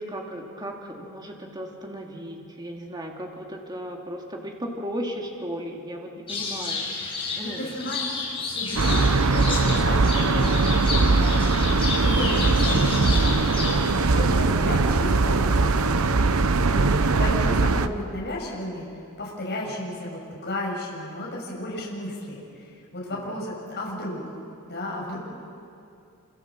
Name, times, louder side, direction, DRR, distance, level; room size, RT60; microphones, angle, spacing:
voice 1, 0.0-6.9 7.3-7.7 19.7-19.8 23.1-23.4 24.9-25.2, equal, 20° right, 0 dB, 2.8 m, -36 dB
sound 1, 6.3-14.0, left 4 dB, 25° left, 6.9 m, -31 dB
voice 2, 7.4-8.0 8.4-10.5 11.1-11.5 12.0-13.7 14.0-16.0 16.7-18.9 19.2-24.4 24.6-25.2, left 1 dB, 50° left, -4 dB, 7.0 m, -33 dB
sound 2, 8.8-17.9, right 3 dB, 75° right, 0.9 m, -21 dB
28.0 x 27.5 x 7.5 m, 2.5 s
head